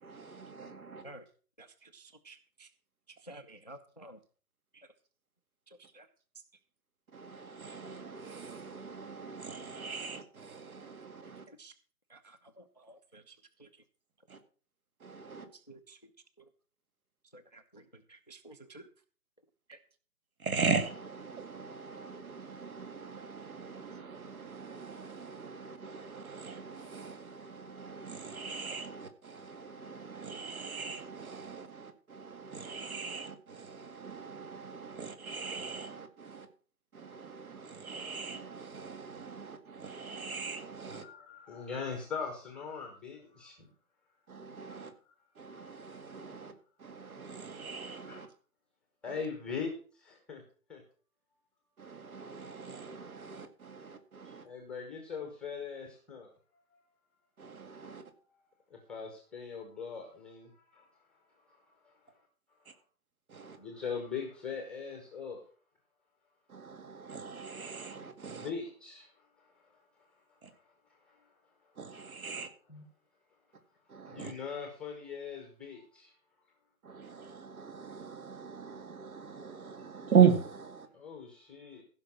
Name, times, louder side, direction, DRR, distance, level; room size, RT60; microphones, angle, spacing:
voice 1, 0.0-1.0 7.1-11.4 14.3-14.4 15.0-15.5 20.4-36.5 36.9-41.1 44.3-44.9 45.4-46.5 46.8-48.3 49.1-49.2 51.8-54.4 57.4-58.0 63.3-63.6 66.5-68.5 70.4-70.5 71.8-72.5 73.9-74.3 76.9-80.9, right 6 dB, 60° right, 9 dB, 2.2 m, -37 dB
voice 2, 1.6-2.7 3.1-4.2 4.7-4.9 5.7-6.1 11.5-11.7 12.1-13.8 15.5-16.0 16.4-16.5 17.3-18.9 19.7-19.8, right 1 dB, 30° left, 11 dB, 0.4 m, -53 dB
voice 3, 40.9-43.7 45.5-45.6 48.1-48.2 49.0-49.7 50.3-50.4 50.7-50.8 54.2-56.3 58.7-60.8 61.5-61.6 61.8-61.9 63.6-65.4 68.3-69.1 71.1-71.2 72.7-72.8 74.1-76.1 80.9-81.8, left 6 dB, ahead, 2 dB, 0.9 m, -41 dB
15.0 x 5.9 x 5.9 m, 0.40 s
figure-of-eight pair, 145°, 49 cm